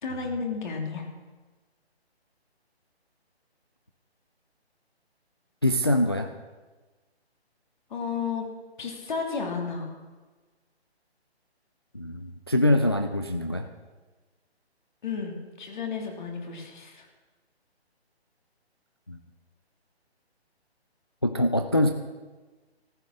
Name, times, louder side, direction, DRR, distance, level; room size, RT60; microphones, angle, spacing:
voice 1, 0.0-1.1 7.9-8.5 8.8-10.0 15.0-17.1, left 5 dB, 45° left, 1 dB, 3.1 m, -32 dB
voice 2, 5.6-6.3 11.9-13.7 19.1-19.2 21.2-21.9, left 1 dB, 25° left, 6 dB, 0.4 m, -24 dB
14.5 x 11.5 x 6.4 m, 1.3 s
hypercardioid pair, 160°, 33 cm